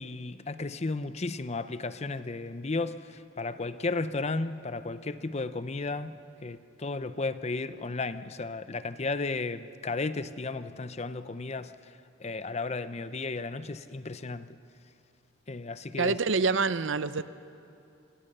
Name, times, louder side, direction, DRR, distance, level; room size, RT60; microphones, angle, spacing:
voice 1, 0.0-6.1 6.4-11.7 12.2-14.5 15.5-16.1, left 3 dB, 35° left, 0.6 m, -34 dB
voice 2, 16.0-17.2, right 4 dB, 70° right, 0.7 m, -26 dB
27.5 x 22.0 x 6.7 m
head